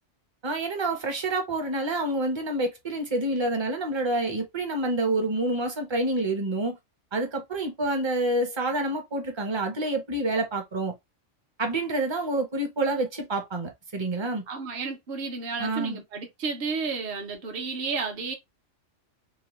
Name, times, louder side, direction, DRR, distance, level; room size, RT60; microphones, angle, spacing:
voice 1, 0.4-6.8 7.1-10.9 11.6-14.4 15.6-16.0, right 2 dB, 30° right, 0.6 m, -28 dB
voice 2, 14.5-18.3, right 4 dB, 55° right, 0.9 m, -32 dB
2.9 x 2.0 x 2.9 m
omnidirectional pair, 1.2 m